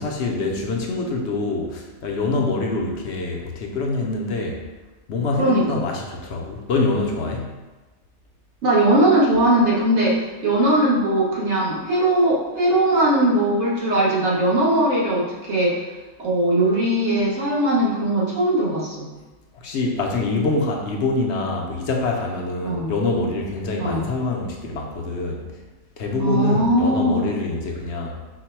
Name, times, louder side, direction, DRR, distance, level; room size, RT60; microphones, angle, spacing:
voice 1, 0.0-4.6 5.1-7.6 19.5-25.4 26.0-28.2, left 3 dB, 70° left, 0 dB, 0.9 m, -25 dB
voice 2, 5.4-5.8 8.6-15.9 16.2-19.1 22.6-23.0 23.8-24.1 26.2-27.3, right 1 dB, 65° right, -5 dB, 1.3 m, -20 dB
4.6 x 2.1 x 4.3 m, 1.2 s
omnidirectional pair, 1.3 m